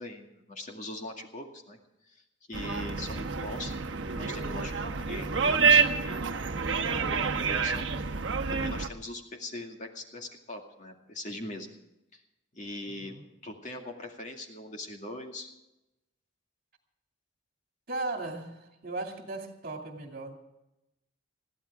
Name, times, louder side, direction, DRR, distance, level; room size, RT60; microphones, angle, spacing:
voice 1, 0.0-1.8 2.1-3.7 4.1-6.2 6.9-7.9 8.5-11.7 12.1-12.2 12.5-13.1 13.4-15.5, left 1 dB, 40° left, 2 dB, 2.2 m, -41 dB
sound 1, 2.5-8.9, right 5 dB, 65° right, 1.0 m, -28 dB
voice 2, 12.8-13.2 17.9-20.3, right 2 dB, 50° right, 3 dB, 2.6 m, -37 dB
21.5 x 15.0 x 3.6 m, 0.89 s
head